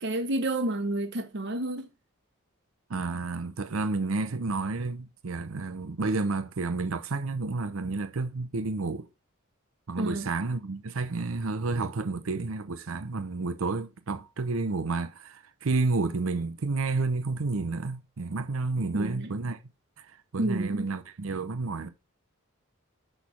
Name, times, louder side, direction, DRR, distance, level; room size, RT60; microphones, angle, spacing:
voice 1, 0.0-1.9 10.0-10.3 18.9-19.4 20.4-20.9, right 1 dB, 55° right, 1.0 m, -30 dB
voice 2, 2.9-9.1 9.9-19.6 20.0-20.1 20.3-21.9, right 3 dB, 75° right, 0.7 m, -30 dB
6.2 x 3.4 x 5.7 m
head